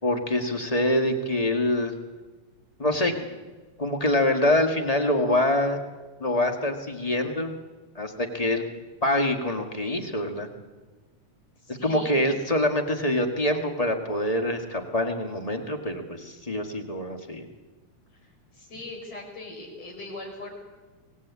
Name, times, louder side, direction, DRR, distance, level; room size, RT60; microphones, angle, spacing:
voice 1, 0.0-1.9 2.8-3.1 3.8-5.8 6.2-7.5 7.9-8.7 9.0-10.5 11.7-17.4, left 1 dB, 15° left, 4 dB, 1.5 m, -25 dB
voice 2, 11.6-12.3 18.1-20.5, left 2 dB, 55° left, 1 dB, 6.7 m, -40 dB
24.5 x 19.5 x 8.4 m, 1.3 s
omnidirectional pair, 3.4 m